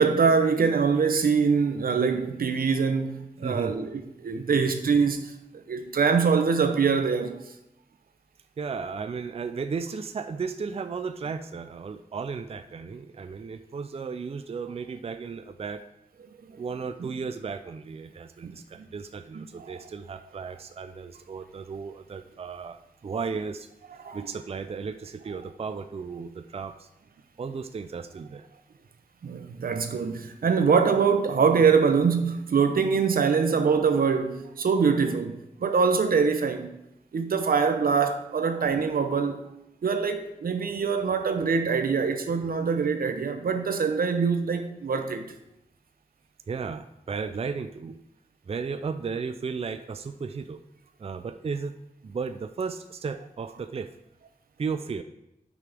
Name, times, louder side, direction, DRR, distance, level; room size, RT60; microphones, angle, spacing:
voice 1, 0.0-5.3 5.7-7.4 16.5-16.6 17.0-17.1 18.4-18.5 18.8-18.9 19.3-19.7 24.0-24.2 29.2-36.8 37.1-39.4 39.8-45.2, right 5 dB, 90° right, 0.8 m, -24 dB
voice 2, 3.4-3.8 8.6-15.8 16.6-23.7 24.1-26.9 27.4-28.5 40.8-40.9 46.5-48.0 48.5-50.6 51.0-51.8 52.0-53.9 54.6-55.0, right 5 dB, 45° right, 0.4 m, -34 dB
9.5 x 5.9 x 3.4 m
wide cardioid pair, 120°, 15 cm